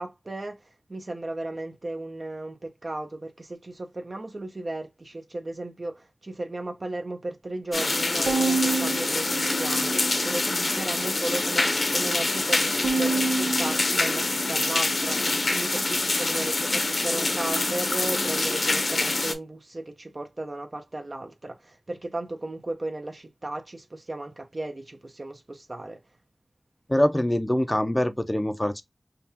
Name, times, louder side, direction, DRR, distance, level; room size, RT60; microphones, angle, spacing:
voice 1, 0.0-26.0, right 2 dB, 55° right, 0.7 m, -35 dB
sound 1, 7.7-19.3, left 2 dB, 70° left, 0.8 m, -26 dB
Bowed string instrument, 8.3-10.6 11.1-11.9 12.8-15.4, right 3 dB, 85° right, 0.6 m, -30 dB
voice 2, 26.9-28.8, left 1 dB, 20° left, 0.5 m, -24 dB
5.2 x 2.3 x 2.7 m
wide cardioid pair, 50°, 0 cm